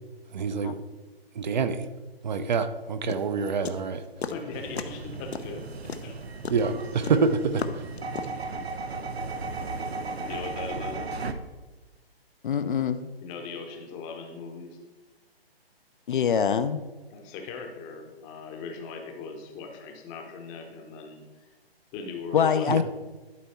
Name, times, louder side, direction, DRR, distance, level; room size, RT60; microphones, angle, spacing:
voice 1, 0.3-0.8 1.3-1.9 2.2-4.0 6.5-7.9 22.7-22.8, right 5 dB, 45° right, 10 dB, 0.6 m, -26 dB
sound 1, 3.1-4.4 4.7-5.1 5.3-8.5, left 5 dB, 85° left, 0.8 m, -34 dB
voice 2, 4.1-5.7 6.0-6.2 10.3-11.1 13.2-14.8 17.1-21.5 21.9-22.8, left 4 dB, 15° left, 4 dB, 0.8 m, -39 dB
sound 2, 4.5-11.3, right 3 dB, 90° right, 0.8 m, -35 dB
voice 3, 12.4-13.1 16.1-16.9 22.3-22.8, left 7 dB, 55° left, 12 dB, 0.5 m, -24 dB
11.5 x 4.5 x 4.2 m, 1.2 s
hypercardioid pair, 145°, 31 cm